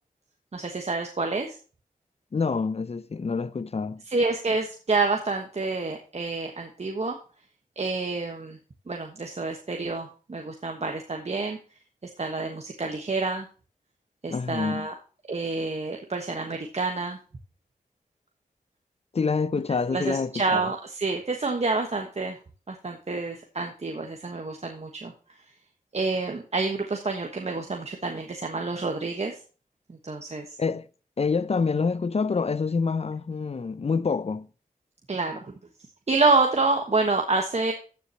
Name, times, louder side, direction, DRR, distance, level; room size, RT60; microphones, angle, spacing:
voice 1, 0.5-1.5 4.1-7.2 7.8-8.6 8.9-11.6 12.2-13.5 14.2-14.9 15.3-17.2 19.9-22.4 22.7-25.1 25.9-29.4 29.9-30.6 35.1-35.5 36.1-37.7, right 3 dB, 50° right, 1.4 m, -28 dB
voice 2, 2.3-4.0 14.3-14.9 19.1-20.6 30.6-30.9 31.2-34.5, left 5 dB, 45° left, 0.6 m, -27 dB
14.5 x 7.1 x 3.0 m
wide cardioid pair, 90°, 15 cm